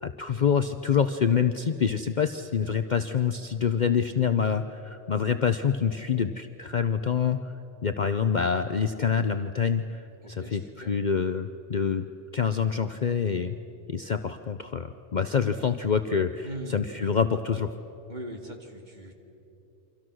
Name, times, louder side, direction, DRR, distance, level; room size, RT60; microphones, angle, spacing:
voice 1, 0.0-7.5 7.8-12.1 12.3-13.5 13.9-17.7, left 6 dB, 45° left, 9 dB, 0.7 m, -26 dB
voice 2, 10.2-10.9 16.4-16.8 18.1-19.1, right 1 dB, 40° right, 2 dB, 2.5 m, -40 dB
29.0 x 25.5 x 6.3 m, 2.9 s
omnidirectional pair, 1.2 m